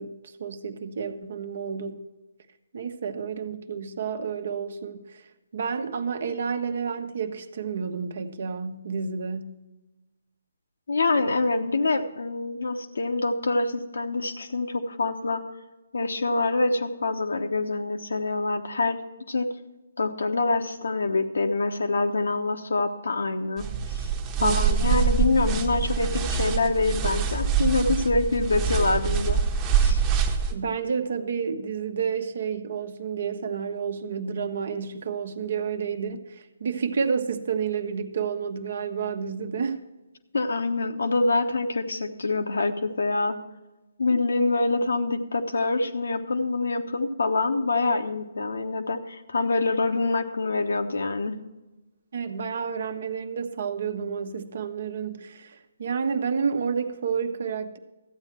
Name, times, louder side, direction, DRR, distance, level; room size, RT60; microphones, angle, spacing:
voice 1, 0.0-2.0 2.7-5.2 5.5-9.6 24.4-24.9 30.5-39.8 44.1-44.2 52.1-57.8, right 6 dB, 55° right, 1.0 m, -30 dB
voice 2, 10.9-15.4 15.9-19.0 19.3-19.5 20.0-23.7 24.4-29.4 29.8-30.0 40.3-43.4 44.0-51.4, left 3 dB, 70° left, 1.1 m, -25 dB
sound 1, 23.6-30.6, right 6 dB, 20° right, 1.1 m, -25 dB
13.5 x 8.9 x 4.4 m
figure-of-eight pair, 140°, 0 cm